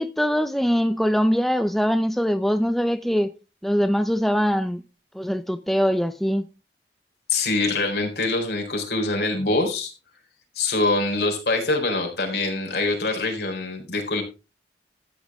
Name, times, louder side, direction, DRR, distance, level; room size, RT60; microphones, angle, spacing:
voice 1, 0.0-3.3 3.6-4.8 5.1-6.4, equal, ahead, 0.5 m, -22 dB
voice 2, 7.3-9.9 10.5-14.2, left 2 dB, 70° left, 4.1 m, -24 dB
13.5 x 8.5 x 3.6 m
head